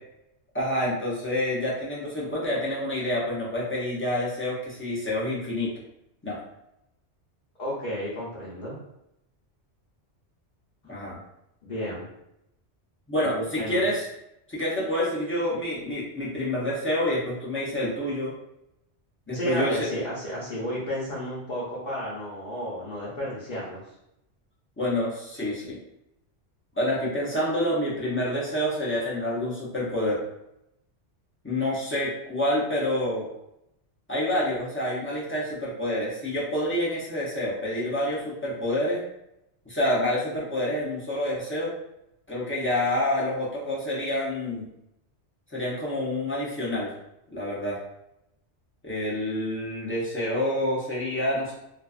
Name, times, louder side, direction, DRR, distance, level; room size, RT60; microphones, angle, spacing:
voice 1, 0.5-5.7 6.2-6.4 10.9-11.2 13.1-14.1 14.5-18.3 19.3-19.8 24.8-25.8 26.8-30.2 31.4-33.3 34.1-39.0 39.7-41.7 42.3-44.6 45.5-46.9 47.3-47.8 48.8-51.5, left 1 dB, 20° left, -7 dB, 0.3 m, -27 dB
voice 2, 7.6-8.8 11.6-12.1 13.2-13.8 19.3-23.8, equal, 50° left, -8 dB, 0.7 m, -32 dB
2.4 x 2.2 x 2.3 m, 0.83 s
omnidirectional pair, 1.2 m